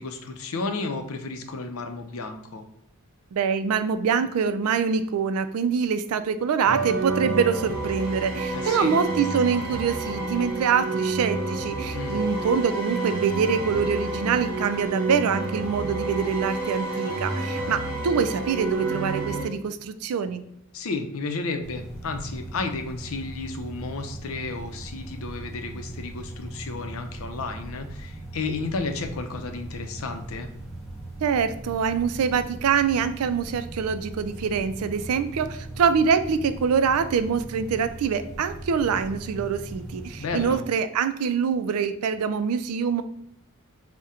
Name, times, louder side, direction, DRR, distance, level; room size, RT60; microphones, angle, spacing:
voice 1, 0.0-2.7 8.5-8.9 11.9-12.2 20.7-30.5 40.2-40.6, left 3 dB, 70° left, 6 dB, 0.5 m, -32 dB
voice 2, 3.3-20.4 31.2-43.0, right 6 dB, 80° right, 11 dB, 0.4 m, -25 dB
sound 1, 6.6-19.4, right 3 dB, 60° right, 0.9 m, -29 dB
sound 2, 21.6-40.5, right 1 dB, ahead, 0.9 m, -39 dB
3.7 x 2.1 x 4.2 m, 0.76 s
head